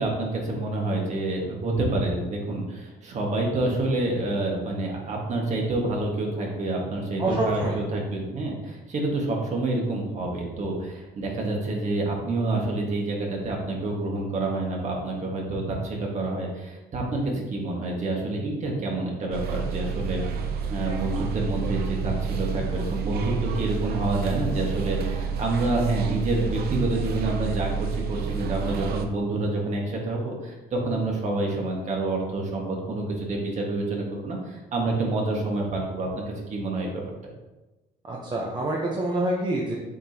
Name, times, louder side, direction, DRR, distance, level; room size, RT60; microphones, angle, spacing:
voice 1, 0.0-20.2 20.7-37.0, right 2 dB, 45° right, -1 dB, 1.7 m, -28 dB
voice 2, 7.2-7.7 38.1-39.8, right 1 dB, 25° right, -3 dB, 1.0 m, -26 dB
sound 1, 19.3-29.1, right 6 dB, 70° right, 0.7 m, -29 dB
7.2 x 4.8 x 2.9 m, 1.1 s
cardioid pair, 110°, 17 cm